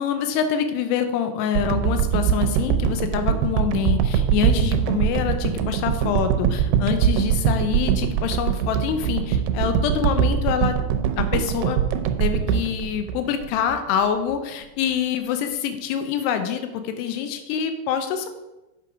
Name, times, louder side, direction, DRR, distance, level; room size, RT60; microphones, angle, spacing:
voice 1, 0.0-10.8 11.2-11.8 12.2-18.3, left 8 dB, 85° left, 8 dB, 2.8 m, -25 dB
sound 1, 1.6-13.8 14.3-14.4, right 8 dB, 80° right, 2.5 m, -22 dB
8.5 x 7.0 x 4.8 m, 1.0 s
omnidirectional pair, 4.8 m